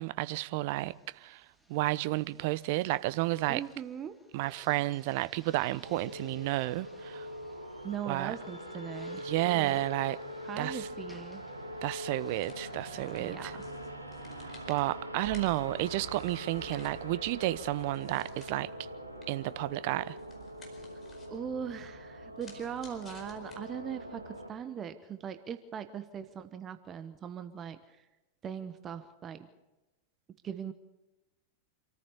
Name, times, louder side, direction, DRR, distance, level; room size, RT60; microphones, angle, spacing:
voice 1, 0.0-3.6 4.3-7.3 8.1-8.3 9.2-10.2 10.6-10.9 11.8-13.6 14.4-18.7 19.3-20.2, right 18 dB, 50° right, 0.7 m, -32 dB
sound 1, 0.7-14.0, equal, ahead, 2.0 m, -61 dB
voice 2, 3.5-4.1 7.8-9.2 9.5-9.8 10.4-11.4 13.2-13.6 21.3-28.1 28.4-29.5 30.4-30.7, right 8 dB, 25° right, 1.2 m, -40 dB
long phased sci-fi back, 5.8-24.5, equal, 85° right, 1.8 m, -43 dB
sound 2, 12.2-24.0, left 4 dB, 20° left, 4.7 m, -56 dB
27.0 x 14.0 x 7.0 m
figure-of-eight pair, 90°, 0 cm